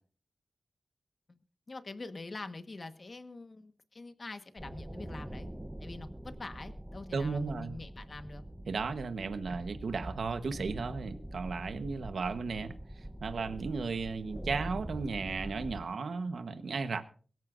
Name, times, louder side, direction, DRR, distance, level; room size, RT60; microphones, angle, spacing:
voice 1, 1.3-5.5 5.8-8.4, left 3 dB, 45° left, 8 dB, 1.4 m, -45 dB
sound 1, 4.6-15.8, right 1 dB, 10° right, 0.9 m, -44 dB
voice 2, 7.1-7.8 8.7-12.7 13.2-17.0, right 4 dB, 90° right, 9 dB, 1.1 m, -35 dB
23.5 x 14.0 x 2.6 m, 0.42 s
wide cardioid pair, 105°, 0 cm